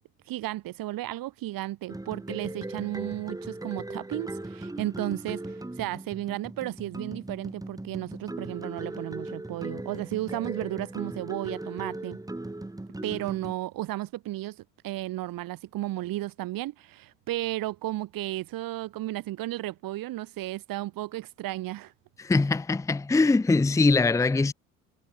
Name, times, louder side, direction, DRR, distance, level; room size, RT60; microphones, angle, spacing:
voice 1, 0.3-12.2 13.0-14.6 14.8-21.9, right 16 dB, 55° right, 6.6 m, -34 dB
sound 1, 1.9-13.5, right 2 dB, 10° right, 4.6 m, -38 dB
voice 2, 22.2-24.5, left 3 dB, 10° left, 0.7 m, -22 dB
figure-of-eight pair, 60°, 40 cm